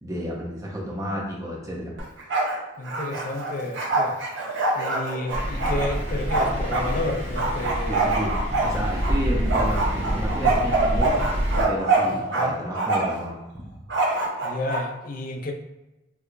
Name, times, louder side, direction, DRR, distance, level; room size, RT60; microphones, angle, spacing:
voice 1, 0.0-1.9 7.9-11.2 11.7-13.9, equal, 15° right, -3 dB, 0.6 m, -31 dB
Bark, 2.0-2.6 2.8-6.9 7.4-9.2 9.5-12.5 12.7-13.2 13.9-14.8, right 3 dB, 60° right, 0.7 m, -24 dB
voice 2, 2.8-4.2 4.8-8.2 12.0-12.6 14.4-15.5, left 2 dB, 40° left, 3 dB, 0.4 m, -31 dB
Thunder, 5.3-11.6, equal, 90° right, 1.1 m, -27 dB
4.6 x 2.2 x 2.5 m, 1.0 s
head